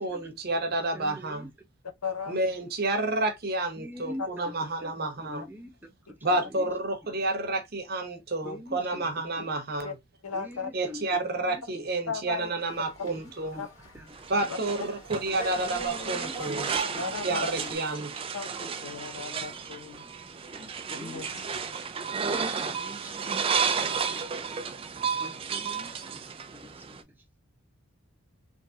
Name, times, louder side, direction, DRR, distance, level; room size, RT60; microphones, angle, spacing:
voice 1, 0.0-1.5 2.3-5.4 6.2-9.9 10.7-13.6 14.3-16.6 17.2-18.1, right 2 dB, 45° right, 0.9 m, -30 dB
voice 2, 0.9-1.5 3.8-4.3 4.6-5.7 6.2-6.7 7.1-7.2 8.4-9.6 10.3-11.8 13.0-13.7 13.9-14.2 15.6-17.0 17.6-17.8 20.0-21.5 21.8-24.2 25.2-27.1, equal, 10° right, 0.8 m, -45 dB
voice 3, 2.0-2.4 6.2-6.4 8.4-8.6 9.4-9.5 9.8-9.9 10.2-10.7 12.1-12.5 13.6-13.7 17.0-17.5 18.3-20.2 20.9-21.4, left 5 dB, 90° left, 0.9 m, -36 dB
sound 1, 12.7-17.8, right 1 dB, 70° left, 2.1 m, -44 dB
sound 2, 14.1-27.0, right 6 dB, 25° right, 0.3 m, -33 dB
3.4 x 3.1 x 2.7 m
head